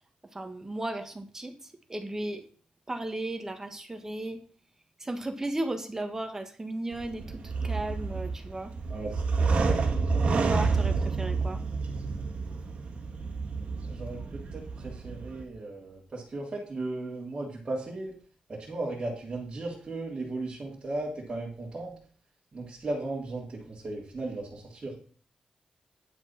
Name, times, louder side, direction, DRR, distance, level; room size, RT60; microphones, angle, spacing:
voice 1, 0.3-1.5 1.9-2.5 2.9-4.4 5.0-7.2 7.6-8.7 10.3-11.6, right 1 dB, 20° right, 6 dB, 1.6 m, -35 dB
sound 1, 6.9-15.4, right 4 dB, 60° right, 1.9 m, -29 dB
voice 2, 8.9-9.5 10.1-10.5 13.8-18.1 18.5-21.9 22.5-25.0, right 2 dB, 35° right, -5 dB, 3.2 m, -36 dB
10.0 x 6.1 x 5.8 m, 0.42 s
wide cardioid pair, 105°, 2 cm